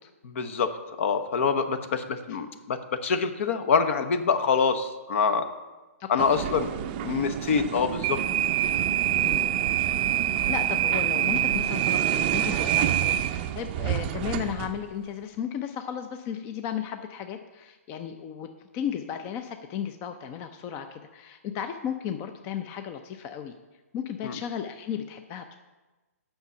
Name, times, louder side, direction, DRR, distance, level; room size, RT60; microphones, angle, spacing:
voice 1, 0.2-5.5 6.1-6.7 7.0-8.2 24.2-24.4, left 5 dB, 60° left, 10 dB, 0.9 m, -25 dB
voice 2, 6.0-6.5 9.2-9.5 10.1-18.5 18.7-23.6 23.9-25.5, left 8 dB, 30° left, 8 dB, 0.5 m, -35 dB
sound 1, 6.2-14.8, right 11 dB, 35° right, 0.5 m, -26 dB
7.9 x 5.9 x 6.8 m, 1.2 s
hypercardioid pair, 140°, 8 cm